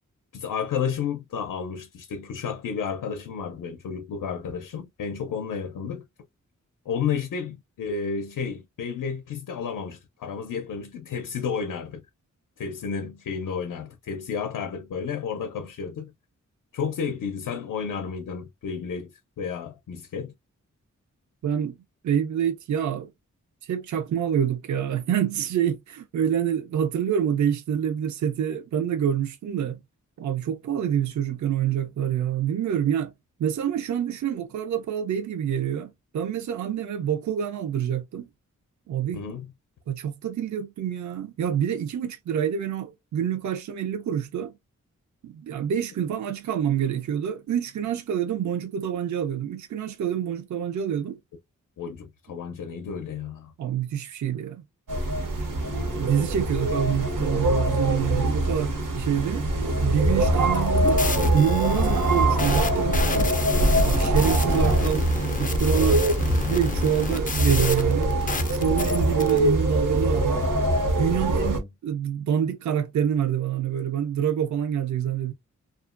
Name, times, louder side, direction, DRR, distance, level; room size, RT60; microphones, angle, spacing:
voice 1, 0.3-6.0 6.9-12.0 12.6-16.1 16.7-20.3 39.1-39.5 51.8-53.5 71.5-71.7, left 6 dB, 80° left, 0.5 m, -32 dB
voice 2, 21.4-21.8 22.0-23.1 23.6-29.8 30.2-33.1 33.4-38.3 38.9-39.2 39.9-44.5 45.2-51.2 53.6-54.6 56.0-61.1 61.3-63.3 63.8-65.1 65.4-66.1 66.4-68.1 68.5-70.4 71.0-75.3, right 9 dB, 65° right, 0.5 m, -27 dB
sound 1, 54.9-71.6, right 1 dB, 80° right, 0.9 m, -23 dB
sound 2, 60.4-69.4, left 4 dB, 30° left, 0.4 m, -32 dB
2.8 x 2.4 x 2.4 m
wide cardioid pair, 130°, 31 cm